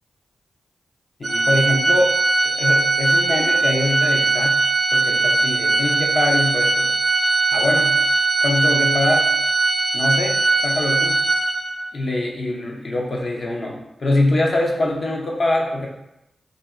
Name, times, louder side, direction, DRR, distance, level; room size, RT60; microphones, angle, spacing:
voice 1, 1.2-2.1 2.4-4.6 4.9-7.0 7.5-8.0 8.4-9.3 9.9-11.2 11.9-15.9, left 2 dB, 60° left, -1 dB, 0.6 m, -23 dB
Organ, 1.2-11.9, right 3 dB, 65° right, 0.6 m, -19 dB
2.6 x 2.0 x 3.5 m, 0.86 s
supercardioid pair, 40°, 0 cm